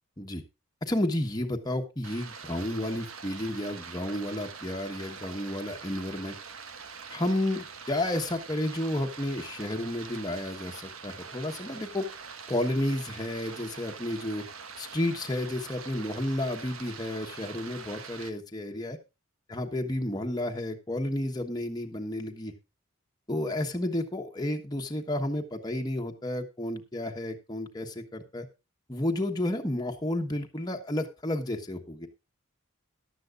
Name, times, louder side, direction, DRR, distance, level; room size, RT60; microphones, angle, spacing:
voice 1, 0.8-6.3 7.1-12.0 12.5-14.4 14.8-19.0 19.5-22.5 23.3-28.5 28.9-32.1, left 1 dB, 20° left, 3 dB, 1.3 m, -31 dB
Stream, 2.0-18.3, right 5 dB, 80° right, 1.5 m, -44 dB
15.0 x 11.5 x 2.5 m, 0.26 s
head